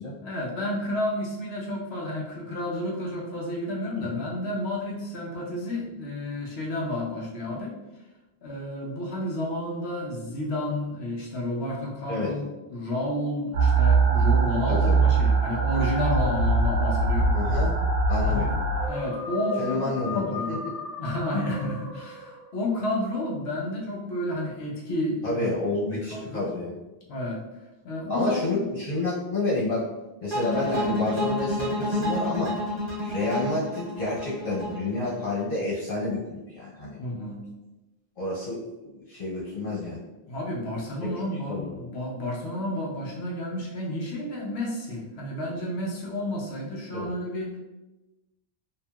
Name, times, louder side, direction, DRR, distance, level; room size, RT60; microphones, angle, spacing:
voice 1, 0.2-7.7 8.4-12.4 12.7-17.4 18.2-18.6 18.8-19.9 20.1-20.6 21.0-25.5 25.9-26.5 27.1-27.4 27.8-28.6 37.0-37.4 40.3-47.6, left 1 dB, 85° left, -2 dB, 1.0 m, -31 dB
sound 1, 13.5-18.9, right 4 dB, 85° right, 0.9 m, -22 dB
voice 2, 14.7-15.0 17.3-17.7 18.1-18.4 19.6-20.6 25.2-26.7 28.1-29.9 30.2-32.6 33.0-37.0 38.2-40.0 41.0-41.1 41.5-41.7 46.9-47.1, left 2 dB, 60° left, -8 dB, 1.4 m, -29 dB
sound 2, 18.7-22.8, left 3 dB, 30° left, 0.6 m, -37 dB
sound 3, 30.3-35.4, left 1 dB, 30° right, 0.8 m, -29 dB
2.8 x 2.8 x 2.2 m, 1.0 s
omnidirectional pair, 1.1 m